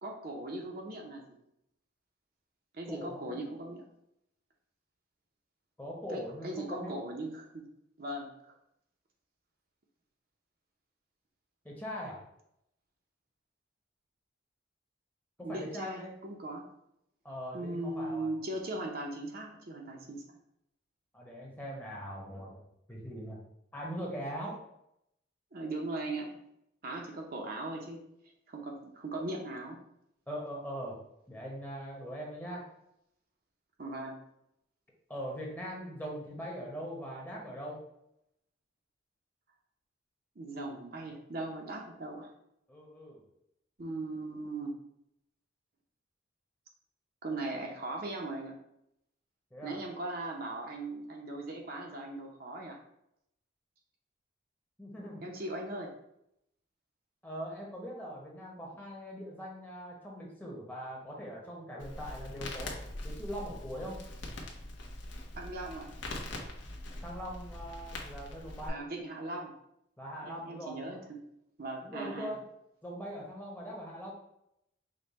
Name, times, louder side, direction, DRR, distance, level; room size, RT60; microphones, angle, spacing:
voice 1, 0.0-1.3 2.7-3.8 6.1-7.6 8.0-8.6 15.4-16.7 17.5-20.2 25.5-26.4 26.8-28.0 28.5-29.8 33.8-34.2 40.4-42.3 43.8-44.7 47.2-48.6 49.6-52.8 55.2-55.9 65.4-65.9 68.7-69.5 70.2-71.2 71.6-72.3, right 2 dB, 50° right, 1 dB, 0.6 m, -39 dB
voice 2, 2.9-3.4 5.8-7.0 11.6-12.2 15.5-16.1 17.2-18.3 21.1-22.6 22.9-23.4 23.7-24.6 30.3-31.0 31.3-32.6 35.1-37.8 42.7-43.2 49.5-49.8 54.8-55.2 57.2-62.7 63.0-64.0 67.0-68.8 70.0-71.0 71.8-72.4 72.8-74.1, equal, 10° left, -3 dB, 0.9 m, -41 dB
Crackle, 61.8-68.7, left 1 dB, 75° left, 0.9 m, -42 dB
5.2 x 2.2 x 4.1 m, 0.79 s
head